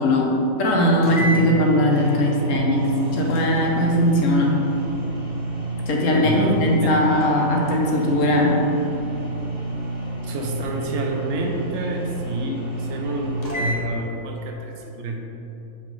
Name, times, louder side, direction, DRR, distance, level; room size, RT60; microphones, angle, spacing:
voice 1, 0.0-2.9 3.1-4.5 5.9-8.5, left 1 dB, 70° left, -1 dB, 1.3 m, -19 dB
sound 1, 0.7-0.8 1.0-13.8, right 2 dB, 35° left, 0.9 m, -29 dB
voice 2, 5.8-6.9 10.2-15.2, right 1 dB, 60° right, 2 dB, 1.0 m, -28 dB
5.7 x 4.3 x 4.7 m, 2.9 s
omnidirectional pair, 1.4 m